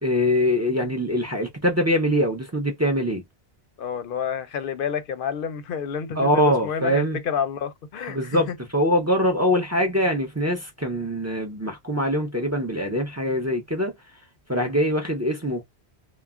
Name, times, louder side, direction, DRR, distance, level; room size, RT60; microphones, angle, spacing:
voice 1, 0.0-3.2 6.2-7.2 8.1-13.9 14.5-15.6, equal, 25° right, 0.4 m, -23 dB
voice 2, 3.8-8.4 14.5-14.7, left 7 dB, 60° left, 0.7 m, -29 dB
2.3 x 2.1 x 3.5 m
omnidirectional pair, 1.1 m